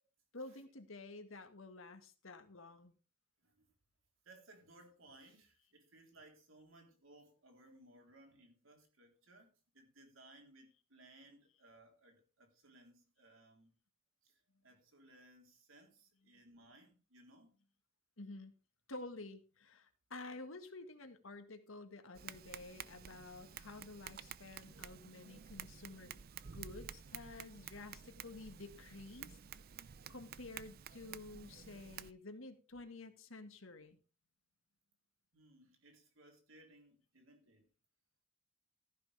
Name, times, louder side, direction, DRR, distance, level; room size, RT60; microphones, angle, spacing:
voice 1, 0.3-3.0 18.2-18.5 18.9-26.2 26.5-29.4 30.1-34.0, left 2 dB, 75° left, 1.9 m, -51 dB
voice 2, 4.2-13.7 14.2-17.5 35.3-37.7, right 2 dB, 75° right, 3.9 m, -62 dB
Tap, 22.1-32.1, right 8 dB, 50° right, 0.5 m, -51 dB
14.5 x 10.5 x 3.5 m
head